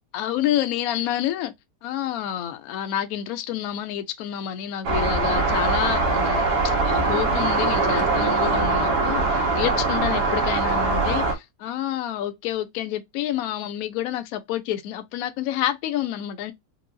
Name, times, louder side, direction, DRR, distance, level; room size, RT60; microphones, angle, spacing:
voice 1, 0.1-1.5 1.8-16.5, left 11 dB, 70° left, 1.0 m, -28 dB
sound 1, 4.8-11.3, right 3 dB, 80° right, 1.5 m, -22 dB
4.5 x 2.0 x 2.5 m
omnidirectional pair, 1.7 m